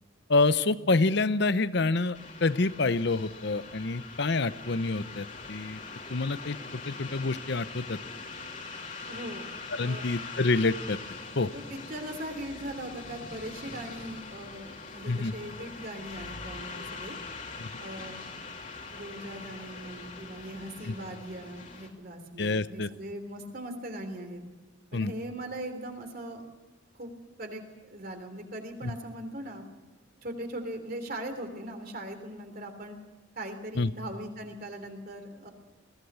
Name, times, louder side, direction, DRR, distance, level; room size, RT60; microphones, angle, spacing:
voice 1, 0.3-5.8 6.1-6.6 6.9-8.0 9.7-11.0 11.4-11.5 15.1-15.3 17.6-17.7 20.9-21.0 22.4-22.9 24.9-25.1 28.8-28.9 33.8-33.9, left 3 dB, 55° left, 14 dB, 0.8 m, -27 dB
sound 1, 2.1-21.9, left 4 dB, 40° left, 2.8 m, -43 dB
voice 2, 9.1-10.1 11.5-17.2 17.7-18.3 18.9-24.4 24.9-26.4 26.9-27.1 27.4-29.6 30.2-33.0 33.3-35.5, right 1 dB, 45° right, 5 dB, 3.3 m, -40 dB
22.0 x 16.5 x 8.2 m, 1.3 s
head